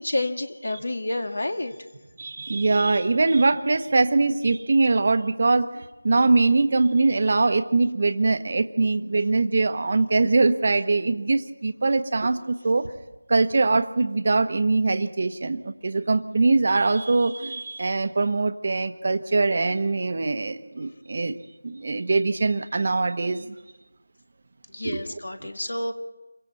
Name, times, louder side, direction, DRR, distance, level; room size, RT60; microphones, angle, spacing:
voice 1, 0.0-1.7 24.7-25.9, left 1 dB, 70° left, 7 dB, 1.8 m, -29 dB
voice 2, 2.2-12.9 13.3-21.4 21.6-23.6 24.8-25.0, right 3 dB, 45° right, 10 dB, 1.2 m, -22 dB
28.5 x 24.0 x 4.3 m, 1.1 s
figure-of-eight pair, 170°, 0 cm